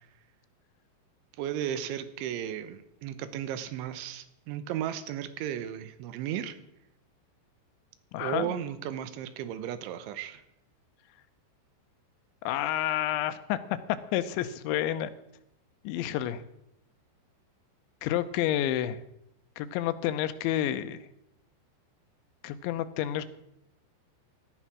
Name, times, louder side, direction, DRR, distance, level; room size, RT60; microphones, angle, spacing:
voice 1, 1.4-6.6 8.2-10.4, right 10 dB, 90° right, 13 dB, 3.5 m, -35 dB
voice 2, 8.1-8.5 12.5-13.6 14.1-15.1 15.8-16.4 18.0-19.0 19.6-21.0 22.4-23.3, left 12 dB, 85° left, 11 dB, 3.1 m, -29 dB
17.5 x 11.5 x 6.1 m, 0.81 s
omnidirectional pair, 5.2 m